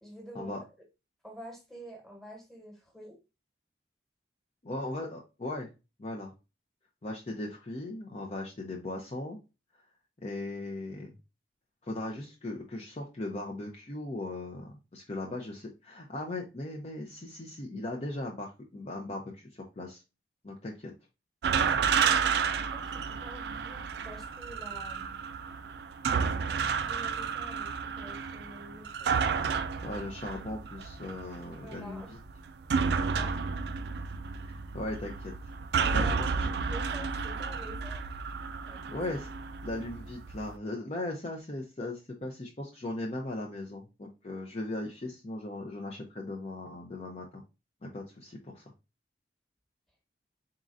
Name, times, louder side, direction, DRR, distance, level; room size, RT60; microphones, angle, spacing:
voice 1, 0.0-0.5 1.2-3.2 21.5-25.3 26.9-29.1 31.6-32.2 32.9-33.4 35.8-38.0 38.7-39.0, equal, ahead, 0 dB, 1.2 m, -48 dB
voice 2, 4.6-5.7 6.0-6.3 7.0-9.4 10.2-11.1 11.8-20.0 20.4-20.9 29.8-32.2 34.4-35.3 35.9-36.1 36.4-36.5 38.9-39.3 39.6-47.4 47.8-48.6, left 2 dB, 35° left, 0 dB, 0.5 m, -38 dB
sound 1, 21.4-40.5, right 6 dB, 60° right, 0.3 m, -31 dB
4.1 x 3.7 x 2.5 m, 0.28 s
head